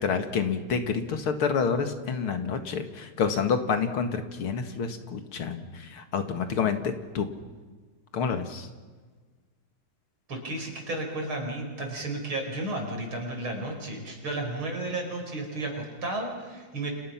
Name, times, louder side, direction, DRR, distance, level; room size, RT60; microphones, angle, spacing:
voice 1, 0.0-7.3 8.1-8.7, left 6 dB, 80° left, 7 dB, 2.7 m, -28 dB
voice 2, 10.3-16.9, right 2 dB, 75° right, 3 dB, 5.9 m, -33 dB
30.0 x 27.5 x 5.9 m, 1.4 s
omnidirectional pair, 2.3 m